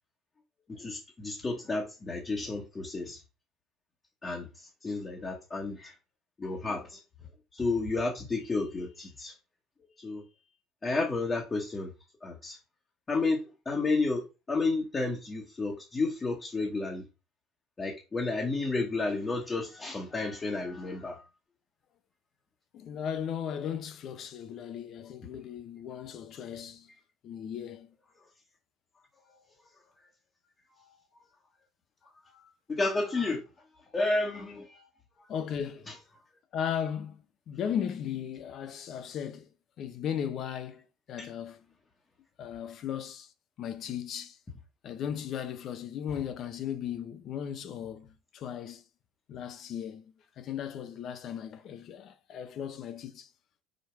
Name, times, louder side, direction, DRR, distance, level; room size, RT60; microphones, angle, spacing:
voice 1, 0.7-3.2 4.2-5.9 6.4-7.0 7.5-9.3 10.0-10.2 10.8-11.9 12.2-12.6 13.1-17.0 17.8-21.3 29.3-29.4 30.8-31.0 32.2-33.5 33.9-34.9 35.2-35.3 35.9-36.0 41.2-41.3, left 3 dB, 20° left, 1.4 m, -32 dB
voice 2, 22.7-26.9 27.2-27.9 35.3-35.9 36.5-39.5 39.8-41.6 42.4-43.3 43.6-44.4 44.8-48.8 49.3-53.3, left 8 dB, 45° left, 0.9 m, -36 dB
5.2 x 4.5 x 4.6 m
cardioid pair, 145°, 0 cm